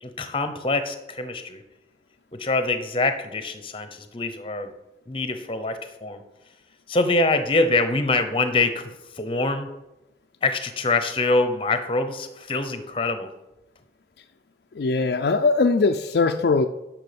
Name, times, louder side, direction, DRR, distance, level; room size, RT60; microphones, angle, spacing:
voice 1, 0.0-1.6 2.3-4.7 5.1-6.2 6.9-9.7 10.4-13.3, left 3 dB, 30° left, 9 dB, 0.8 m, -24 dB
voice 2, 14.8-16.7, left 4 dB, 60° left, 6 dB, 0.4 m, -20 dB
10.5 x 6.2 x 5.2 m, 0.94 s
head